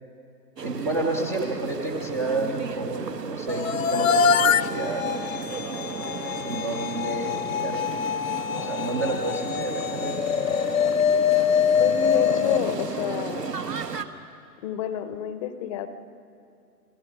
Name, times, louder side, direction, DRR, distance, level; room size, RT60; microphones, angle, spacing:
voice 1, 0.6-5.3 6.4-7.4 7.6-7.8 8.5-10.2, right 2 dB, 10° right, -1 dB, 0.5 m, -30 dB
sound 1, 0.6-14.1, right 5 dB, 85° right, 1.5 m, -35 dB
sound 2, 3.5-13.7, left 7 dB, 55° left, 0.9 m, -24 dB
voice 2, 11.8-13.5 14.6-15.9, left 9 dB, 20° left, 11 dB, 0.7 m, -29 dB
29.5 x 20.0 x 5.9 m, 2.5 s
figure-of-eight pair, 125°, 47 cm